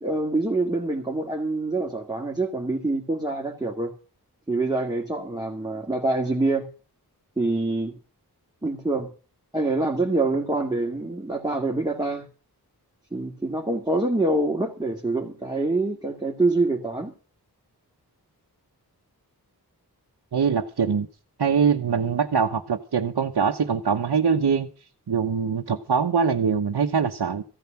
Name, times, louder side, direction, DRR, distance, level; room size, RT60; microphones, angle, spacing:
voice 1, 0.0-3.9 4.5-6.7 7.4-8.0 8.6-9.1 9.5-12.3 13.1-17.1, right 2 dB, 10° right, 2.2 m, -25 dB
voice 2, 20.3-21.1 21.4-24.7 25.1-27.4, right 6 dB, 80° right, 1.1 m, -23 dB
15.0 x 9.3 x 5.9 m
wide cardioid pair, 55°, 39 cm